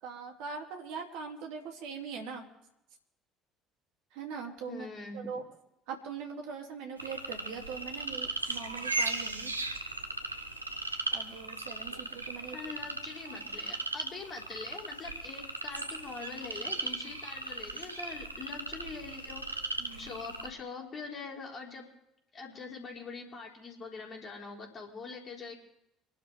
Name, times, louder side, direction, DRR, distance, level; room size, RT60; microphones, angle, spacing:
voice 1, 0.0-2.5 4.1-5.4 5.9-9.6 11.1-12.6 13.3-13.4 19.8-20.2, right 5 dB, 60° right, 2 dB, 2.7 m, -41 dB
voice 2, 4.7-5.3 12.5-19.6 20.0-21.9 22.3-25.5, left 4 dB, 35° left, 0 dB, 4.4 m, -43 dB
sound 1, 7.0-20.5, right 3 dB, 85° right, 1.0 m, -37 dB
26.0 x 12.0 x 3.5 m, 0.86 s
figure-of-eight pair, 55°, 0 cm